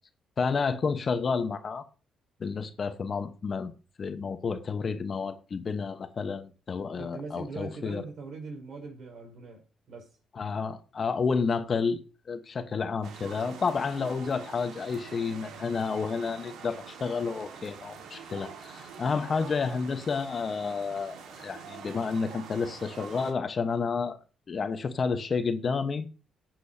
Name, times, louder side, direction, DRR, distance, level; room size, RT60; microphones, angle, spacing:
voice 1, 0.4-1.8 2.4-3.7 4.0-8.0 10.4-12.0 12.3-24.2 24.5-26.1, left 5 dB, 45° left, 1.1 m, -30 dB
voice 2, 6.9-10.2, right 4 dB, 65° right, 5.1 m, -41 dB
sound 1, 13.0-23.3, right 6 dB, 80° right, 1.7 m, -45 dB
18.5 x 7.8 x 2.8 m
cardioid pair, 90°, 0 cm